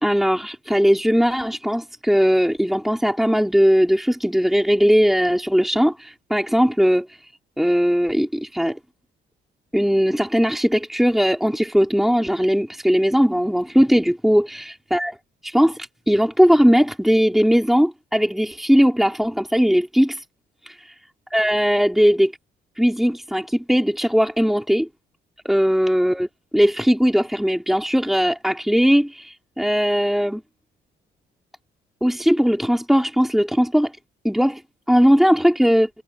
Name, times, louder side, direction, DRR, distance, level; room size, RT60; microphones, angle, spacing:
voice 1, 0.0-7.2 7.6-8.8 9.7-15.2 15.4-20.2 20.6-20.9 21.3-22.3 22.8-24.9 25.4-26.3 26.5-30.4 32.0-33.9 34.2-34.6 34.9-35.9, equal, ahead, 3.2 m, -19 dB
cardioid pair, 90°, 20 cm